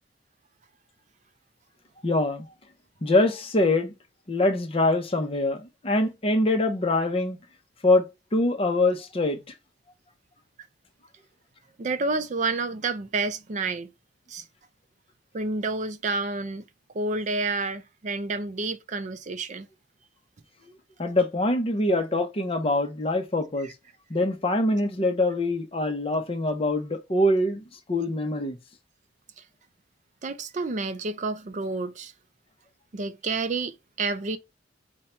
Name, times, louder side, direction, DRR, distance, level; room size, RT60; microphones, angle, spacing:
voice 1, 2.0-2.4 3.0-3.9 4.3-7.4 7.8-9.4 21.0-23.7 24.1-28.6, left 2 dB, 30° left, 0.7 m, -24 dB
voice 2, 11.8-13.9 14.3-14.4 15.3-16.6 16.9-19.7 23.6-23.7 30.2-32.1 32.9-34.4, right 3 dB, 40° right, 0.4 m, -29 dB
5.3 x 2.2 x 4.3 m
head